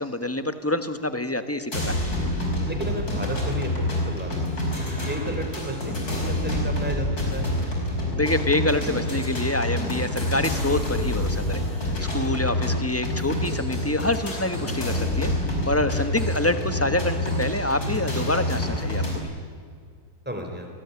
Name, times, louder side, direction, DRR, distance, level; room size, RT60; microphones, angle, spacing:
voice 1, 0.0-1.9 8.1-15.3 15.6-19.3, left 1 dB, 10° left, 9 dB, 1.3 m, -26 dB
sound 1, 1.7-19.2, left 1 dB, 70° left, 6.1 m, -27 dB
voice 2, 2.7-4.6 5.1-7.5 12.0-12.1 20.3-20.7, equal, 5° right, 3 dB, 4.1 m, -33 dB
28.5 x 19.5 x 9.8 m, 2.1 s
omnidirectional pair, 1.7 m